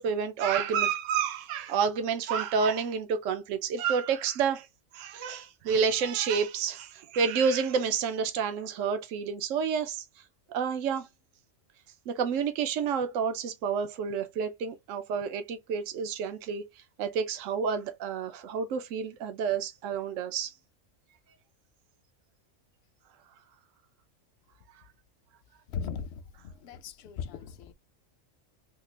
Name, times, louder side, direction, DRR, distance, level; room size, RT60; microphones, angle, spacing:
voice 1, 0.0-4.7 4.9-10.0 10.5-11.1 12.1-16.6 17.0-20.5, right 6 dB, 75° right, 1.0 m, -29 dB
voice 2, 25.7-26.1 26.4-27.7, left 6 dB, 65° left, 0.8 m, -37 dB
3.6 x 2.4 x 3.2 m
omnidirectional pair, 1.4 m